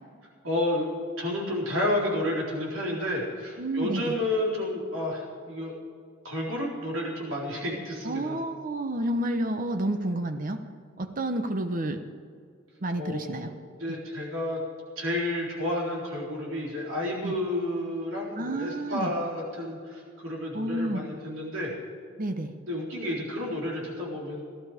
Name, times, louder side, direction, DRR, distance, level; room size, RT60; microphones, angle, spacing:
voice 1, 0.4-0.9 1.2-5.7 6.2-8.4 10.1-10.2 13.0-13.5 13.8-14.6 15.0-21.7 22.7-24.4, left 1 dB, 70° right, -3 dB, 4.1 m, -31 dB
voice 2, 3.6-4.1 8.0-10.6 11.0-12.0 12.8-13.5 17.2-17.3 18.4-19.1 20.5-21.0 22.2-22.5, right 1 dB, 40° right, 8 dB, 0.9 m, -30 dB
16.5 x 12.5 x 5.1 m, 2.3 s
head